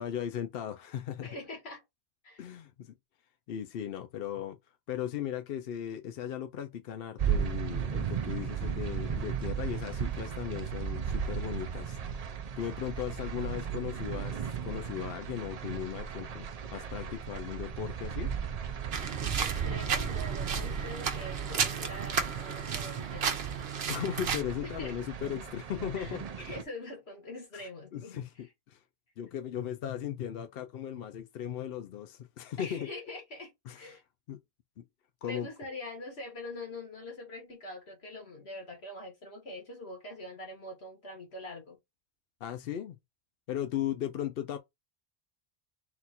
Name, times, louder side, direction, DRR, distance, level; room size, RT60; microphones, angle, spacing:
voice 1, 0.0-1.3 2.4-2.9 3.5-4.6 4.9-12.0 12.6-18.3 23.9-26.2 27.5-27.6 27.9-28.8 29.2-32.9 33.7-34.0 34.3-34.4 34.8-34.9 35.2-35.5 42.4-43.0 43.5-44.6, left 10 dB, 70° left, 0.8 m, -37 dB
voice 2, 1.2-1.8 2.2-2.5 19.4-23.4 24.6-24.9 25.9-28.5 32.6-34.0 35.2-41.8, left 2 dB, 85° left, 1.9 m, -44 dB
sound 1, 7.2-26.6, right 7 dB, 50° right, 0.5 m, -36 dB
sound 2, 18.9-24.4, right 6 dB, 80° right, 1.0 m, -33 dB
4.0 x 2.4 x 4.2 m
omnidirectional pair, 1.0 m